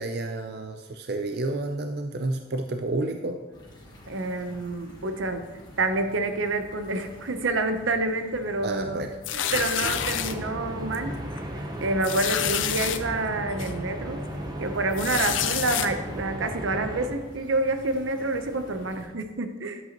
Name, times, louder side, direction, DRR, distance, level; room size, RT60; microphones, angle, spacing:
voice 1, 0.0-3.4 8.6-9.1, right 2 dB, 55° right, 6 dB, 0.5 m, -30 dB
sound 1, 3.5-19.1, equal, 20° left, 1.6 m, -48 dB
voice 2, 4.1-5.5 5.8-9.1 9.3-11.1 11.8-14.2 14.6-19.8, right 2 dB, 80° right, 8 dB, 0.7 m, -28 dB
sound 2, 9.2-10.3 10.9-11.1 11.4-11.5 12.0-13.0 13.6-13.7 14.9-15.9, left 10 dB, 80° left, 0.5 m, -28 dB
sound 3, 9.8-17.1, equal, 20° right, 0.8 m, -35 dB
11.0 x 7.8 x 2.9 m, 1.2 s
head